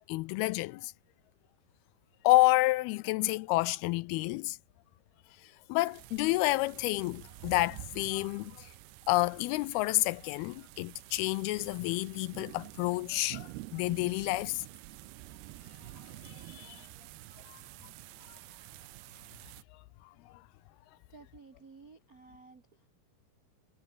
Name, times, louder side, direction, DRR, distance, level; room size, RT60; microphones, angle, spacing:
voice 1, 0.1-0.9 2.2-4.6 5.4-8.7 9.1-14.6 16.3-16.9 17.5-17.6, left 19 dB, 80° left, 2.3 m, -29 dB
sound 1, 5.8-19.6, right 19 dB, 90° right, 2.8 m, -49 dB
voice 2, 21.1-22.9, right 4 dB, 55° right, 1.0 m, -54 dB
omnidirectional pair, 4.7 m